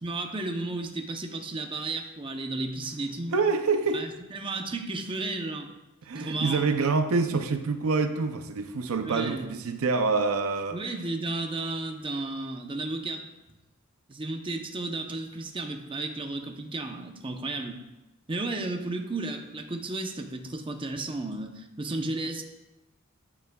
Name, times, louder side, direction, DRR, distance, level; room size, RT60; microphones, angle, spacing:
voice 1, 0.0-3.3 3.9-5.7 6.1-6.7 9.0-9.5 10.7-13.2 14.1-17.8 18.3-22.4, right 2 dB, 25° right, 4 dB, 0.7 m, -33 dB
voice 2, 3.3-4.1 6.1-10.8, right 4 dB, 75° right, 7 dB, 0.6 m, -26 dB
10.0 x 9.2 x 2.3 m, 1.0 s
head